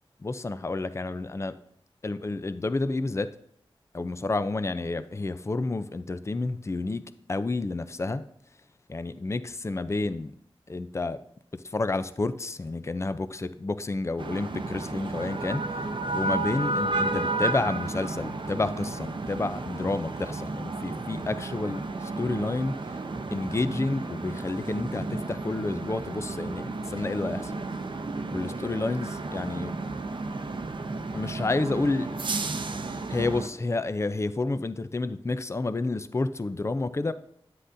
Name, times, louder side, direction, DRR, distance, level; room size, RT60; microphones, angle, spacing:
voice 1, 0.2-1.6 2.0-3.3 3.9-7.0 7.3-8.2 8.9-10.3 10.7-11.2 11.5-15.8 16.1-22.7 23.3-27.5 28.3-29.8 31.1-32.1 33.1-37.1, left 3 dB, 30° left, 12 dB, 0.4 m, -30 dB
sound 1, 14.2-33.5, right 3 dB, 55° right, 0.7 m, -32 dB
9.9 x 7.7 x 2.6 m, 0.71 s
wide cardioid pair, 60°, 10 cm